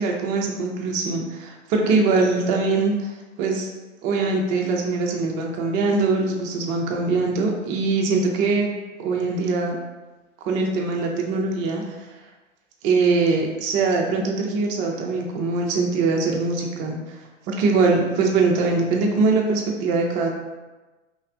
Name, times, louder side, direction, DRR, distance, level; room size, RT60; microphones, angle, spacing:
voice 1, 0.0-3.1 3.4-3.7 4.0-8.7 9.0-9.8 10.4-11.9 12.8-17.0 17.5-20.3, right 3 dB, 20° right, 0 dB, 0.3 m, -22 dB
3.3 x 2.4 x 3.5 m, 1.2 s
hypercardioid pair, 110°, 37 cm